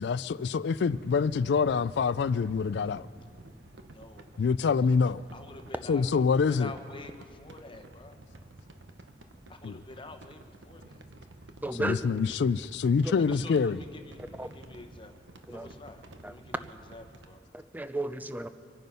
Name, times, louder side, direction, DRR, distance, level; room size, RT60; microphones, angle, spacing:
voice 1, 0.0-3.1 4.4-5.2 5.9-6.7 9.6-9.8 11.8-13.8, left 5 dB, 65° left, 0.3 m, -26 dB
sound 1, 0.7-17.4, right 1 dB, 80° right, 1.1 m, -51 dB
voice 2, 3.9-4.3 5.0-8.2 9.5-11.0 13.2-17.4, left 2 dB, 30° left, 1.0 m, -48 dB
voice 3, 11.6-12.1 12.9-13.1 14.4-14.5 15.5-15.7 16.2-16.3 17.5-18.5, right 1 dB, 10° right, 0.5 m, -34 dB
25.0 x 9.3 x 5.6 m
head